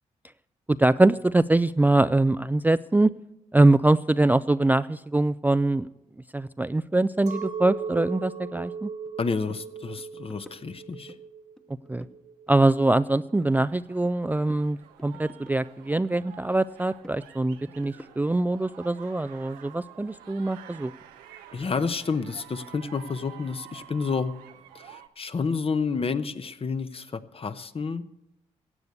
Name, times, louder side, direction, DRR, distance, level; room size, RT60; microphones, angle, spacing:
voice 1, 0.7-3.1 3.5-5.9 6.3-8.9 11.9-12.1 12.5-20.9, right 2 dB, 10° right, 13 dB, 0.4 m, -23 dB
Chink clink, 7.3-12.7, right 6 dB, 60° right, 1.5 m, -38 dB
sound 1, 8.6-8.7 9.1-9.2 9.5-9.7 10.0-11.2 11.6-12.2 12.5-14.2 14.5-16.3 16.6-18.4, equal, 5° left, 1.1 m, -50 dB
voice 2, 9.2-11.1 21.5-24.3 24.7-28.0, left 5 dB, 40° left, 11 dB, 0.9 m, -30 dB
sound 2, 13.4-25.1, right 10 dB, 90° right, 0.7 m, -49 dB
16.0 x 8.2 x 6.7 m, 0.87 s
supercardioid pair, 45°, 15 cm